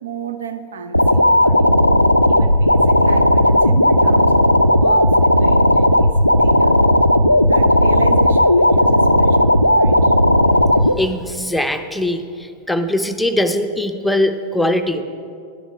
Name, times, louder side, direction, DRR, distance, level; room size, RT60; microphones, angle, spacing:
voice 1, 0.0-1.7 2.3-4.3 4.7-6.1 6.4-6.8 7.4-10.1, right 7 dB, 65° right, 9 dB, 0.7 m, -33 dB
sound 1, 0.9-10.9, left 1 dB, 90° left, 0.3 m, -13 dB
voice 2, 11.0-15.0, left 1 dB, ahead, 6 dB, 0.7 m, -21 dB
12.0 x 10.0 x 4.8 m, 2.4 s
figure-of-eight pair, 90°, 0 cm